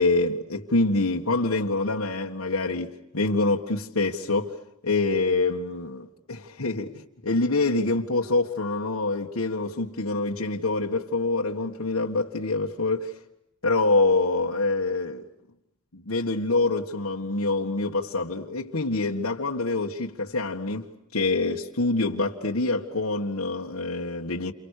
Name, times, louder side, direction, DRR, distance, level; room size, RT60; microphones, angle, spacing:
voice 1, 0.0-4.6 4.8-13.2 13.6-15.2 15.9-20.9 21.1-24.5, left 3 dB, 75° left, 1.8 m, -26 dB
30.0 x 29.5 x 6.7 m
head